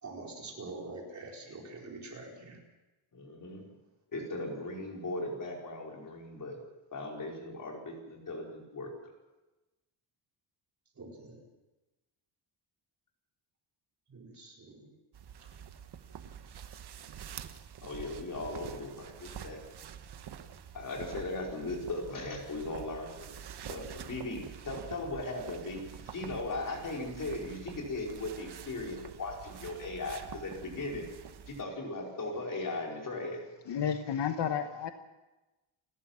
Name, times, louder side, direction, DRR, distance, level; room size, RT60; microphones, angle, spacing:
voice 1, 0.0-2.6 11.0-11.5 14.1-14.9, right 3 dB, 35° right, -1 dB, 4.5 m, -45 dB
voice 2, 3.1-3.7 4.1-6.6 6.9-9.1 17.8-19.6 20.7-23.3 23.7-31.0 31.5-33.4, left 2 dB, 40° left, 0 dB, 4.9 m, -38 dB
sound 1, 15.1-31.6, right 8 dB, 50° right, 1.2 m, -47 dB
voice 3, 33.7-34.9, left 8 dB, 55° left, 8 dB, 1.1 m, -31 dB
29.5 x 12.5 x 7.4 m, 1.1 s
wide cardioid pair, 180°, 50 cm